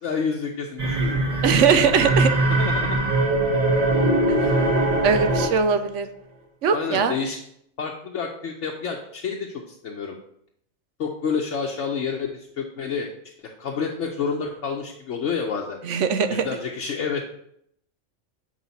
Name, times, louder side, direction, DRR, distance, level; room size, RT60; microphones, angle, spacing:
voice 1, 0.0-1.2 2.5-3.0 6.7-7.4 7.8-10.2 11.0-13.1 13.4-16.0 16.3-17.2, left 5 dB, 65° left, 0 dB, 1.0 m, -29 dB
sound 1, 0.8-5.7, right 2 dB, 30° right, 1.1 m, -21 dB
voice 2, 1.4-2.3 4.4-4.5 5.0-6.1 6.6-7.1 15.8-16.4, right 6 dB, 70° right, 9 dB, 1.0 m, -20 dB
7.7 x 5.0 x 4.0 m, 0.72 s
omnidirectional pair, 1.3 m